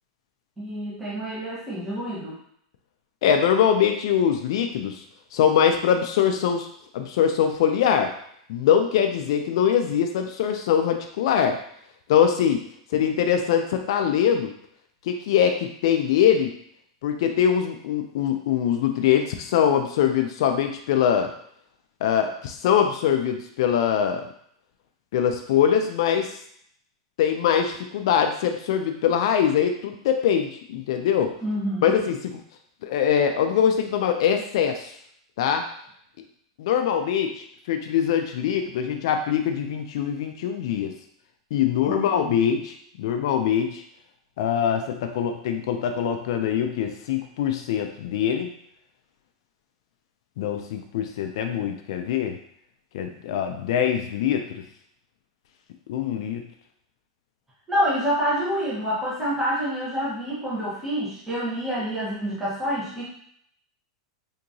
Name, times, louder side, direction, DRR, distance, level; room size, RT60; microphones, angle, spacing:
voice 1, 0.6-2.4 31.4-32.0 41.8-42.4 57.7-63.1, equal, 5° right, -8 dB, 1.0 m, -27 dB
voice 2, 3.2-5.0 5.3-6.7 6.9-8.1 8.5-11.6 12.1-12.6 12.9-14.5 15.1-16.5 17.0-21.3 22.0-24.3 25.1-26.3 27.2-31.3 31.8-32.4 32.8-34.9 35.4-35.6 36.6-40.9 41.5-43.8 44.4-48.5 50.4-52.3 52.9-54.5 55.9-56.4, left 8 dB, 60° left, 5 dB, 0.4 m, -23 dB
3.5 x 2.8 x 2.7 m, 0.67 s
supercardioid pair, 155°, 3 cm